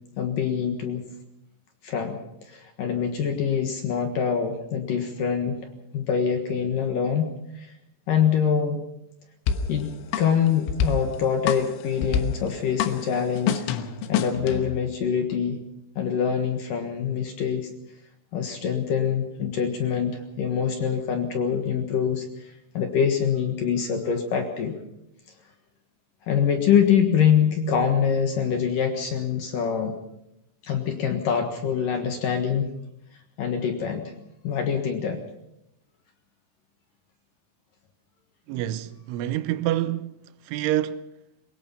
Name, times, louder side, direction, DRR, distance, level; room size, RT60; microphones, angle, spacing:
voice 1, 0.2-1.0 1.8-2.2 2.5-5.6 5.9-7.7 8.1-8.8 9.7-13.7 14.1-15.6 16.0-17.7 18.3-24.8 26.2-29.9 30.6-32.7 33.4-34.0 34.4-35.2, left 7 dB, 60° left, 2.5 m, -24 dB
sound 1, 9.5-14.8, left 7 dB, 85° left, 3.7 m, -28 dB
voice 2, 38.5-40.1 40.5-41.0, right 13 dB, 80° right, 3.3 m, -27 dB
22.5 x 20.5 x 5.7 m
omnidirectional pair, 5.5 m